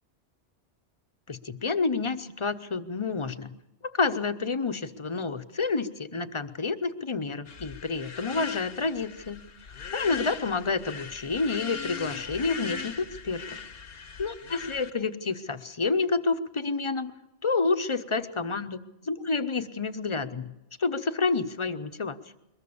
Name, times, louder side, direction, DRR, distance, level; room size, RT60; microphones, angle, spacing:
voice 1, 1.3-3.6 3.8-9.4 9.9-13.4 14.2-17.1 17.4-20.5 20.8-22.2, left 4 dB, 30° left, 10 dB, 0.8 m, -29 dB
sound 1, 7.5-14.9, left 6 dB, 55° left, 1.2 m, -39 dB
22.5 x 20.5 x 7.0 m, 0.92 s
omnidirectional pair, 1.2 m